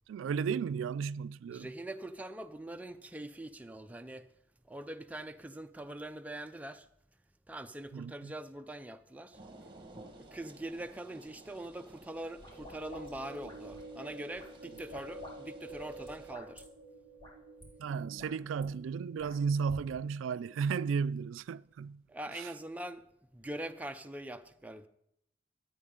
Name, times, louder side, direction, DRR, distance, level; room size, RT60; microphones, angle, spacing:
voice 1, 0.1-1.7 7.9-8.3 17.8-22.0 22.3-22.5, right 6 dB, 90° right, 0.3 m, -34 dB
voice 2, 1.5-4.3 4.7-6.9 7.5-9.4 10.2-16.6 22.1-23.0 23.3-24.9, right 1 dB, 10° right, 0.4 m, -43 dB
sound 1, 9.3-16.3, right 2 dB, 25° right, 1.5 m, -56 dB
sound 2, 12.2-13.9 14.3-15.3 15.6-16.6 17.2-17.3 17.6-17.7 18.0-18.7 19.2-19.8, left 1 dB, 25° left, 4.5 m, -50 dB
sound 3, 12.4-19.7, right 1 dB, 85° left, 2.3 m, -50 dB
14.0 x 8.6 x 3.8 m
head